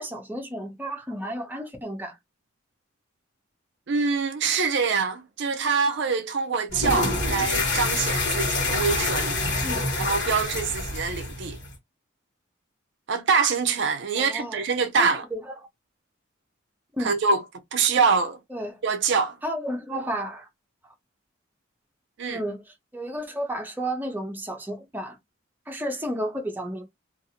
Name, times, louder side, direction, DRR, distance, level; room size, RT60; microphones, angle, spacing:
voice 1, 0.0-2.2 9.6-9.9 14.2-14.6 15.0-15.5 16.9-17.1 18.5-18.8 19.4-20.5 22.3-22.6 22.9-25.2 25.7-26.8, right 1 dB, 10° right, 0.6 m, -32 dB
voice 2, 3.9-9.4 10.0-11.6 13.1-15.2 17.0-17.4 17.7-18.4 18.8-19.4 22.2-22.4, right 5 dB, 60° right, 0.4 m, -25 dB
sound 1, 6.7-11.7, left 2 dB, 55° left, 1.4 m, -26 dB
2.5 x 2.4 x 2.7 m
head